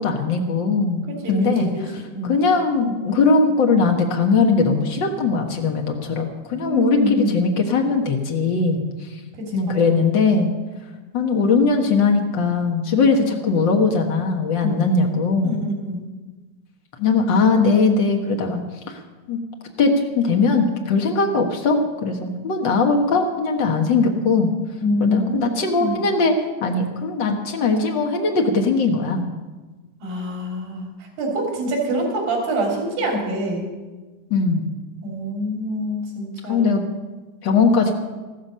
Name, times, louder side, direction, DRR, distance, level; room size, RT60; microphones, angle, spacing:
voice 1, 0.0-1.7 2.2-8.8 9.5-10.5 11.1-15.5 17.0-18.6 18.9-19.0 19.3-19.4 19.8-24.5 25.0-29.3 34.3-34.7 36.5-36.8 37.4-37.9, left 4 dB, 75° left, 2 dB, 1.0 m, -20 dB
voice 2, 1.1-2.4 6.6-7.4 9.3-9.9 14.6-15.0 15.4-16.0 24.8-26.0 30.0-33.7 35.0-36.8, equal, 85° right, 0 dB, 5.0 m, -26 dB
14.5 x 13.5 x 5.6 m, 1.2 s
omnidirectional pair, 4.0 m